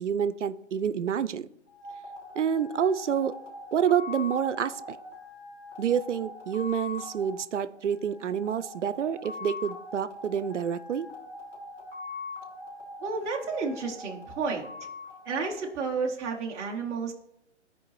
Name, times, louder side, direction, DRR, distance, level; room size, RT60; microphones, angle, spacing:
voice 1, 0.0-1.5 2.4-3.3 3.7-5.0 5.8-11.1, right 8 dB, 80° right, 15 dB, 0.5 m, -28 dB
sound 1, 1.7-16.1, left 3 dB, 80° left, 3.3 m, -43 dB
voice 2, 13.0-14.7 15.2-17.1, right 4 dB, 10° right, -1 dB, 0.5 m, -31 dB
13.5 x 4.7 x 3.1 m, 0.80 s
figure-of-eight pair, 135°, 35 cm